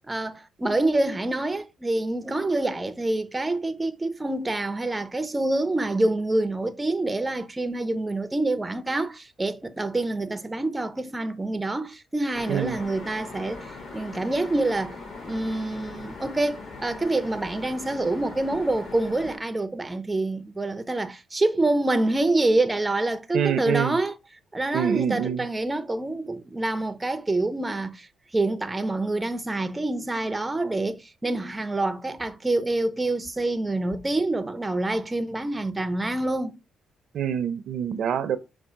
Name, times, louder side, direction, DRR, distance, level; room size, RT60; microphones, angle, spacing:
voice 1, 0.1-13.7 13.9-15.0 15.2-24.1 24.5-28.1 28.3-36.6, right 2 dB, 15° right, 0.5 m, -26 dB
sound 1, 12.3-19.4, left 3 dB, 50° left, 1.8 m, -40 dB
voice 2, 12.5-12.8 23.3-24.0 24.7-25.4 37.1-38.4, right 8 dB, 65° right, 0.5 m, -26 dB
5.4 x 2.4 x 3.5 m
cardioid pair, 90°, 0 cm